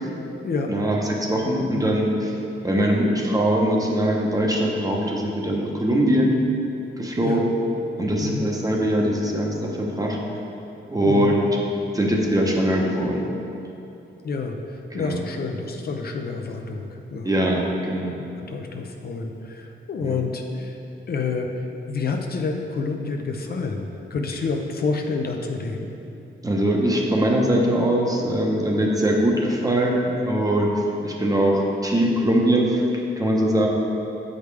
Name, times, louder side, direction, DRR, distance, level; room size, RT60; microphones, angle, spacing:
voice 1, 0.7-2.3 2.6-6.4 7.0-7.5 8.0-10.2 10.9-11.5 11.9-13.3 15.0-15.2 17.2-18.1 20.0-20.2 26.4-30.7 31.0-32.8 33.2-33.7, right 1 dB, 20° right, -1 dB, 0.8 m, -22 dB
voice 2, 11.0-11.4 14.2-14.6 14.9-17.3 18.0-18.1 18.5-20.8 21.1-21.5 21.9-25.9, left 4 dB, 50° left, 3 dB, 0.5 m, -28 dB
7.9 x 5.1 x 3.3 m, 2.8 s
cardioid pair, 105°, 20 cm